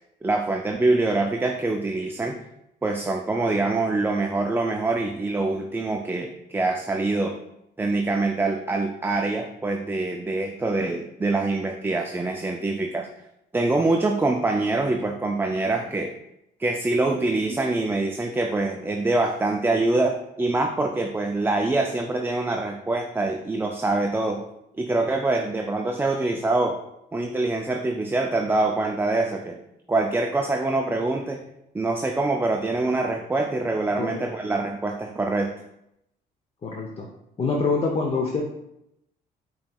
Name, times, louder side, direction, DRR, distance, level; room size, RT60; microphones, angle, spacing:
voice 1, 0.2-2.4 2.8-7.4 7.8-13.1 13.5-16.1 16.6-24.4 24.8-26.8 27.1-29.6 29.9-31.4 31.7-35.5, right 2 dB, 10° right, 3 dB, 0.3 m, -25 dB
voice 2, 36.6-37.1 37.4-38.4, left 4 dB, 30° left, -1 dB, 0.6 m, -25 dB
5.1 x 3.0 x 2.3 m, 0.82 s
supercardioid pair, 75°, 19 cm